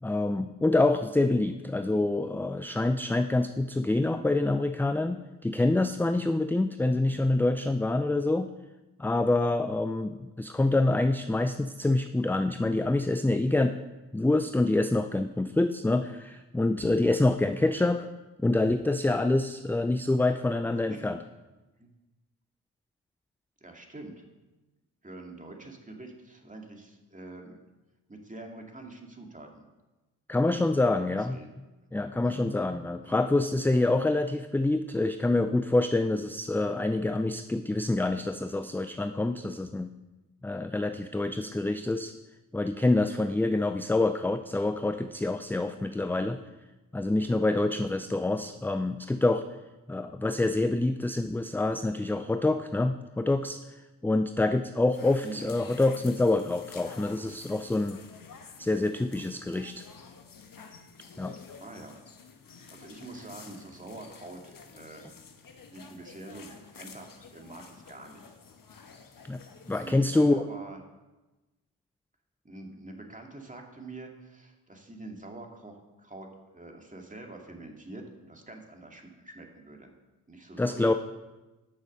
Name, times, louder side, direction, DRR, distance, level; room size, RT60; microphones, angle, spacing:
voice 1, 0.0-8.5 9.0-13.8 14.1-18.1 18.4-21.2 30.3-31.4 31.9-39.9 40.4-42.1 42.5-46.4 46.9-49.4 49.9-53.6 54.0-58.0 58.6-59.8 61.2-61.4 69.2-69.4 69.7-70.4 80.6-80.9, left 2 dB, 5° left, 9 dB, 0.4 m, -26 dB
voice 2, 23.6-24.2 25.0-27.6 28.1-29.6 31.0-31.5 32.2-32.4 33.0-33.2 55.2-55.5 61.6-62.0 62.7-65.0 65.7-68.4 69.7-70.8 72.4-79.9 80.3-80.9, right 2 dB, 15° right, 2 dB, 2.3 m, -45 dB
sound 1, 54.9-69.9, left 5 dB, 45° left, 1.4 m, -50 dB
10.0 x 6.3 x 5.4 m, 1.1 s
hypercardioid pair, 45°, 44 cm